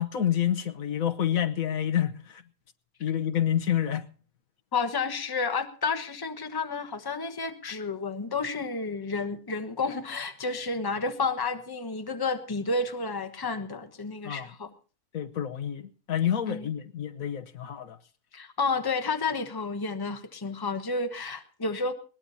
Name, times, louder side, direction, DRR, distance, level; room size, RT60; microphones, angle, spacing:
voice 1, 0.0-2.4 3.0-4.0 14.2-14.5 15.1-18.0, left 10 dB, 70° left, 1.4 m, -28 dB
voice 2, 4.7-14.7 16.5-16.6 18.3-21.9, left 4 dB, 15° left, 1.1 m, -31 dB
21.0 x 19.0 x 2.8 m
omnidirectional pair, 1.6 m